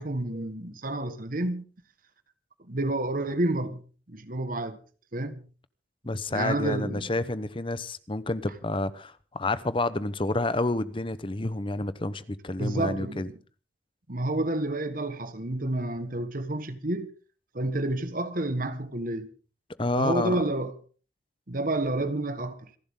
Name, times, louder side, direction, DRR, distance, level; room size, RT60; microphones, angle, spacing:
voice 1, 0.0-1.6 2.6-3.8 4.1-4.8 5.1-5.4 6.3-7.1 12.6-13.4 14.1-17.1 17.5-19.3 19.9-20.8 21.5-22.7, right 1 dB, 45° right, 1.5 m, -29 dB
voice 2, 6.0-13.3 19.8-20.4, left 2 dB, 30° left, 0.9 m, -29 dB
27.0 x 11.5 x 3.7 m
head